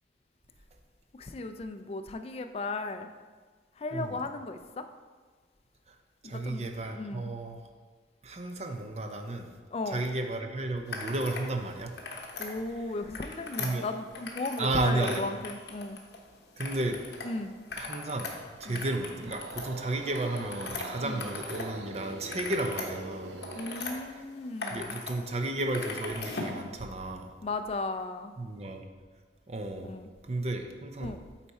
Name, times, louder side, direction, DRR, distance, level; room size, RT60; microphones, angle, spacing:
voice 1, 1.1-3.1 3.8-4.8 6.2-7.3 9.7-10.0 12.4-16.0 17.2-17.5 18.7-18.8 21.0-21.3 23.5-25.0 27.4-28.3 29.8-30.1 31.0-31.2, left 2 dB, 35° left, 8 dB, 0.4 m, -36 dB
voice 2, 6.2-7.6 8.2-9.5 9.9-11.9 13.6-13.8 14.6-15.2 16.6-17.0 17.8-18.3 18.6-23.3 24.7-27.3 28.4-28.8 29.5-29.9 30.3-31.1, right 2 dB, 35° right, 5 dB, 0.6 m, -33 dB
sound 1, 10.9-11.5 11.8-12.5 13.0-14.7 15.0-16.2 16.6-17.3 17.6-21.7 22.0-23.9 24.4-25.1 25.4-26.6, left 3 dB, 65° left, 1.0 m, -39 dB
sound 2, 19.1-24.0, right 3 dB, 85° right, 0.5 m, -44 dB
8.2 x 4.3 x 4.2 m, 1.5 s
head